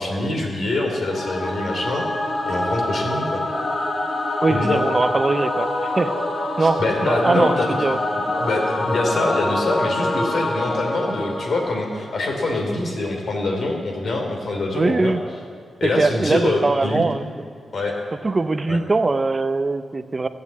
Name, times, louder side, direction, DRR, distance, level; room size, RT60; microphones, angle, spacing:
voice 1, 0.0-2.0 2.4-3.4 4.5-4.8 6.6-7.8 8.4-15.1 15.8-17.1 17.7-17.9 18.7-18.8, left 2 dB, 60° left, 2 dB, 3.1 m, -24 dB
Singing / Musical instrument, 1.1-12.4, left 2 dB, 45° left, 1.6 m, -25 dB
voice 2, 4.4-5.7 5.9-6.1 6.6-8.0 14.7-15.2 15.8-17.3 18.2-20.3, right 3 dB, 30° right, 11 dB, 0.6 m, -21 dB
14.5 x 9.4 x 8.4 m, 2.2 s
wide cardioid pair, 125°, 0 cm